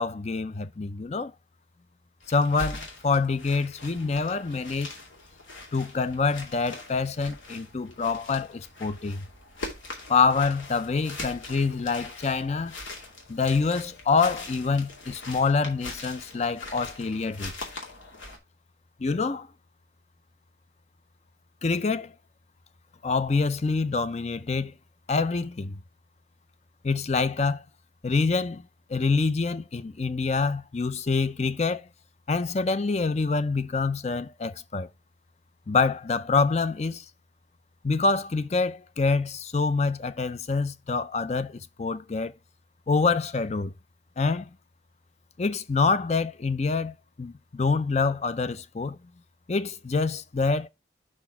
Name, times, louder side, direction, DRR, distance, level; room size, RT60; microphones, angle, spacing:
voice 1, 0.0-1.3 2.3-4.9 5.7-9.3 10.1-12.7 13.3-17.5 19.0-19.5 21.6-22.1 23.0-24.7 25.1-25.8 26.8-27.6 28.0-28.6 28.9-31.9 32.3-34.9 35.7-37.0 37.8-42.3 42.9-43.7 44.2-44.5 45.4-49.0 49.5-50.7, left 4 dB, 35° left, 0.5 m, -26 dB
sound 1, 2.2-18.4, left 2 dB, 80° left, 2.4 m, -42 dB
5.9 x 4.4 x 5.6 m
head